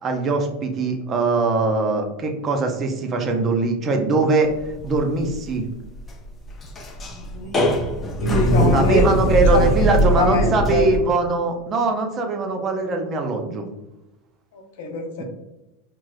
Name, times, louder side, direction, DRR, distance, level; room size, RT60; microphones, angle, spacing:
voice 1, 0.0-4.5 4.8-5.7 8.7-13.7 15.2-15.3, right 3 dB, 35° right, 3 dB, 0.6 m, -21 dB
sound 1, 4.5-11.0, equal, 25° left, 0.5 m, -21 dB
voice 2, 7.2-7.5 8.2-9.2 9.5-9.7 10.2-10.8 14.5-15.2, left 2 dB, 70° left, 3 dB, 0.7 m, -24 dB
4.5 x 2.0 x 2.4 m, 0.94 s
hypercardioid pair, 105°, 0 cm